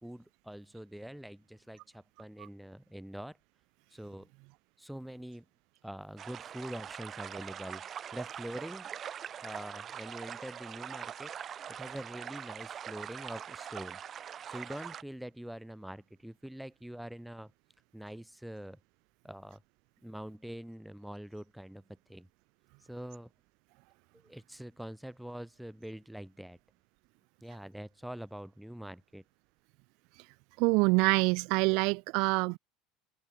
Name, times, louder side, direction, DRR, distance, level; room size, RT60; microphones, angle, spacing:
voice 1, 0.0-3.4 3.9-4.3 4.8-5.4 5.8-8.9 9.4-11.3 11.7-14.0 14.5-17.5 17.9-18.8 19.2-19.6 20.0-22.3 22.8-23.3 24.2-26.6 27.4-29.2, equal, 5° right, 1.6 m, -44 dB
sound 1, 6.2-15.0, right 9 dB, 40° right, 1.5 m, -43 dB
voice 2, 30.6-32.6, right 30 dB, 60° right, 0.4 m, -26 dB
hypercardioid pair, 75°, 0 cm